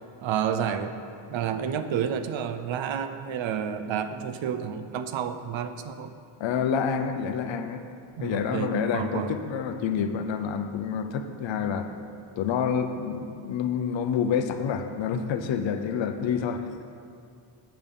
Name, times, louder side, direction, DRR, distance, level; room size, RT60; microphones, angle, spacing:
voice 1, 0.2-1.0 1.3-6.1 8.2-9.3 9.8-9.9, right 8 dB, 70° right, 10 dB, 0.6 m, -30 dB
voice 2, 6.4-7.8 8.2-11.9 12.4-16.7, left 7 dB, 65° left, 8 dB, 0.7 m, -28 dB
7.8 x 5.3 x 6.9 m, 2.4 s
wide cardioid pair, 170°, 49 cm